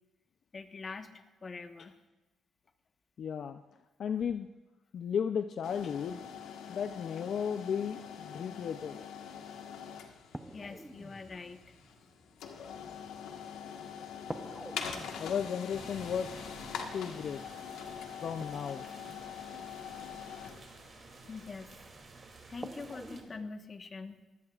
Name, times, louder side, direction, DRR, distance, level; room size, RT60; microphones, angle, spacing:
voice 1, 0.5-1.9 10.5-11.7 21.3-21.9 22.5-24.2, left 4 dB, 35° left, 7 dB, 1.3 m, -44 dB
voice 2, 3.2-3.6 4.0-4.5 4.9-6.2 6.7-9.0 15.2-16.5 16.9-17.4 18.2-18.9, left 7 dB, 60° left, 8 dB, 0.5 m, -34 dB
sound 1, 5.6-22.5, left 7 dB, 85° left, 1.5 m, -44 dB
sound 2, 9.5-9.6 10.3-13.8 14.3-20.4 21.8-21.9 22.6-23.5, right 1 dB, 10° right, 0.8 m, -49 dB
sound 3, 15.7-23.2, right 3 dB, 40° right, 2.7 m, -53 dB
22.5 x 16.5 x 2.5 m, 1.1 s
cardioid pair, 90°, 0 cm